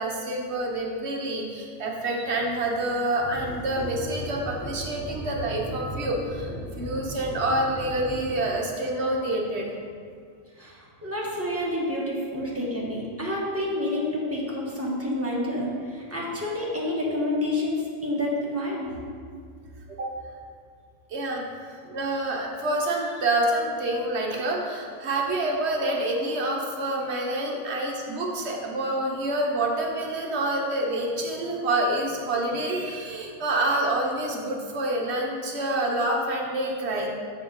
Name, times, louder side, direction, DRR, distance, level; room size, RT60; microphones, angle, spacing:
voice 1, 0.0-6.5 6.8-9.7 12.3-12.4 20.0-20.1 21.1-21.4 21.9-37.1, right 1 dB, 55° right, -1 dB, 1.2 m, -27 dB
sound 1, 3.2-8.5, right 1 dB, 10° left, 0.8 m, -37 dB
voice 2, 10.6-18.9 27.6-27.8, left 1 dB, 10° right, -5 dB, 1.2 m, -29 dB
7.4 x 4.2 x 5.3 m, 2.1 s
omnidirectional pair, 1.5 m